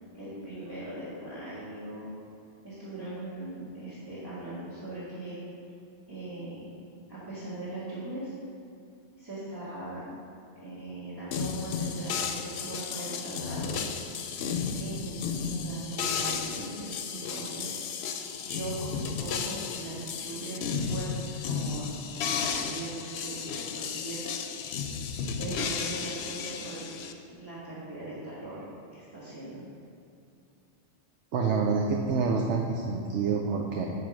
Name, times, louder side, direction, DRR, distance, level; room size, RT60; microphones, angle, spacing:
voice 1, 0.1-2.1 2.6-5.4 6.1-6.7 7.1-8.3 9.2-10.1 10.5-13.9 14.8-18.2 18.4-24.3 25.3-26.9 27.2-28.6 28.9-29.6, right 1 dB, 20° right, -10 dB, 1.7 m, -40 dB
sound 1, 11.3-27.1, left 6 dB, 70° left, 0.8 m, -33 dB
voice 2, 31.3-33.9, right 4 dB, 85° right, 0 dB, 1.0 m, -27 dB
9.1 x 3.3 x 6.1 m, 2.6 s
omnidirectional pair, 1.2 m